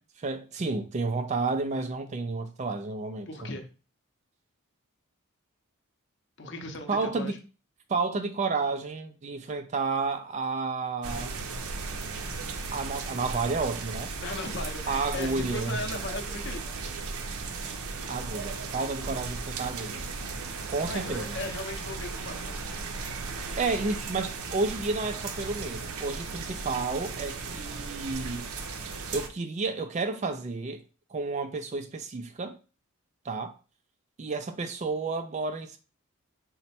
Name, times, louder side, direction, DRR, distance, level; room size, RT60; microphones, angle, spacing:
voice 1, 0.2-3.5 6.9-7.4 7.9-11.3 12.7-14.1 14.9-15.8 18.1-20.1 20.7-21.4 23.6-28.5 29.1-30.8 31.1-32.6 33.2-33.5 34.2-35.8, right 3 dB, 35° right, 0.3 m, -31 dB
voice 2, 3.3-3.7 6.4-7.4 14.2-16.6 20.9-22.6, left 2 dB, 55° left, 0.7 m, -37 dB
sound 1, 11.0-29.3, right 4 dB, 85° right, 0.6 m, -36 dB
4.1 x 2.1 x 4.2 m
head